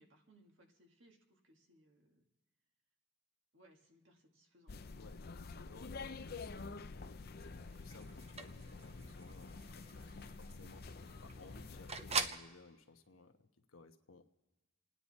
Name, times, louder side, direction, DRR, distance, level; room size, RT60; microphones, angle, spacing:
voice 1, 0.0-2.2 3.5-4.7, right 1 dB, 60° right, 2 dB, 2.0 m, -67 dB
sound 1, 4.7-12.3, left 3 dB, 45° left, 0.6 m, -49 dB
voice 2, 5.0-14.3, left 3 dB, 80° left, 6 dB, 1.2 m, -59 dB
sound 2, 7.4-12.5, right 5 dB, 30° right, 0.6 m, -44 dB
29.0 x 9.9 x 4.2 m, 1.1 s
head